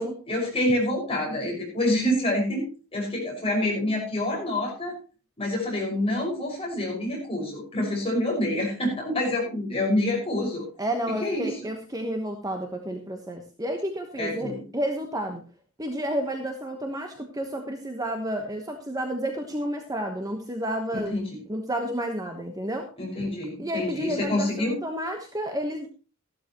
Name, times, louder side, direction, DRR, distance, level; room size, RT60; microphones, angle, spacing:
voice 1, 0.3-4.9 5.4-10.6 11.1-11.6 14.2-14.6 20.9-21.2 23.0-24.8, left 1 dB, 25° left, -1 dB, 5.8 m, -27 dB
voice 2, 10.8-15.4 15.8-21.2 21.5-22.9 23.6-25.9, right 1 dB, 15° right, 4 dB, 1.2 m, -31 dB
14.0 x 12.0 x 3.0 m, 0.34 s
head